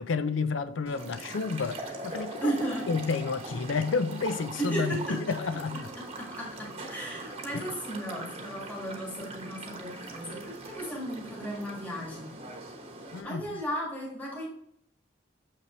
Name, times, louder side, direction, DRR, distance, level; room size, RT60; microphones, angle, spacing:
voice 1, 0.0-2.5 2.9-5.9 7.5-7.6 13.1-13.6, left 4 dB, 80° left, 0.5 m, -30 dB
sound 1, 0.9-13.2, right 2 dB, 30° right, 1.0 m, -41 dB
voice 2, 2.4-2.8 4.6-5.2 6.2-12.3 13.2-14.5, right 1 dB, 10° left, 1.9 m, -35 dB
6.6 x 5.8 x 3.1 m
head